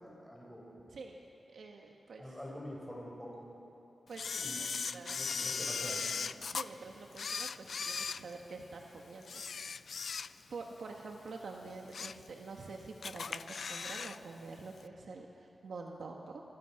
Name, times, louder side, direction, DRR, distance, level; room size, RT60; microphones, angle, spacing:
voice 1, 0.0-0.7 2.2-3.4 4.4-4.6 5.1-6.1, equal, 5° left, -3 dB, 4.7 m, -46 dB
voice 2, 1.5-2.4 4.1-5.8 6.5-9.5 10.5-16.4, right 3 dB, 80° right, 1 dB, 1.6 m, -47 dB
Camera, 4.2-6.7 7.1-8.8 9.2-10.6 11.0-11.1 11.6-12.3 12.6-12.7 13.0-14.2 14.4-14.5, left 5 dB, 60° left, 0.5 m, -38 dB
28.5 x 25.0 x 5.9 m, 2.9 s
wide cardioid pair, 165°, 0 cm